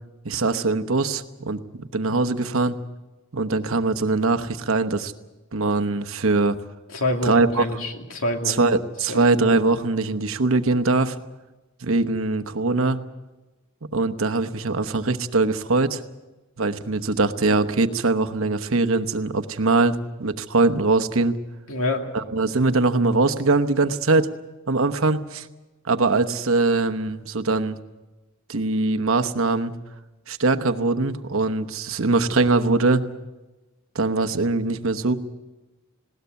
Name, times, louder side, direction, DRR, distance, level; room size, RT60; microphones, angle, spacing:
voice 1, 0.2-2.8 3.3-5.1 5.5-6.6 7.2-7.6 8.5-11.2 11.8-13.0 13.9-16.0 16.6-21.4 22.1-24.3 24.7-25.5 25.8-27.8 28.5-29.7 30.3-33.0 33.9-35.2, right 3 dB, 70° right, 8 dB, 1.0 m, -22 dB
voice 2, 6.9-8.8 9.1-9.2 21.7-22.1, left 1 dB, 70° left, 3 dB, 2.6 m, -27 dB
20.0 x 17.5 x 8.1 m, 1.1 s
head